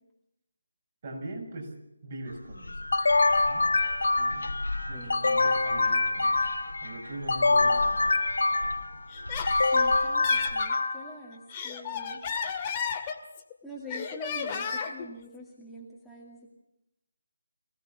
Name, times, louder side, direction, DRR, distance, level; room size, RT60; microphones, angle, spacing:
voice 1, 1.0-1.7 2.0-2.8 3.5-3.6 4.2-4.5 4.9-6.4 6.8-8.2, right 2 dB, 40° right, 1 dB, 7.2 m, -41 dB
sound 1, 2.3-10.7, left 2 dB, 80° left, 2.6 m, -38 dB
sound 2, 2.9-4.6 5.1-6.8 7.3-8.9 9.5-11.2, left 3 dB, 65° left, 1.3 m, -25 dB
Laughter, 9.1-10.8 11.3-13.5 13.9-15.1, left 6 dB, 25° left, 2.0 m, -34 dB
voice 2, 9.7-12.3 13.6-16.5, left 1 dB, ahead, -7 dB, 2.4 m, -44 dB
25.0 x 17.0 x 7.1 m, 0.88 s
figure-of-eight pair, 155°, 0 cm